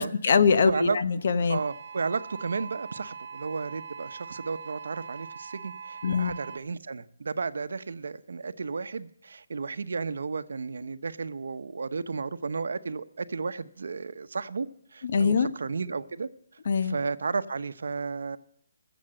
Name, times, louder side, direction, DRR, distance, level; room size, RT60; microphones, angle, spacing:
voice 1, 0.0-1.6 6.0-6.3 15.0-15.5 16.7-17.0, left 5 dB, 55° left, 0.8 m, -23 dB
voice 2, 0.6-1.0 1.5-14.7 14.9-16.3 16.8-18.4, right 4 dB, 75° right, 0.7 m, -33 dB
sound 1, 1.5-6.6, right 6 dB, 45° right, 0.9 m, -42 dB
15.0 x 7.1 x 7.7 m
hypercardioid pair, 165°, 0 cm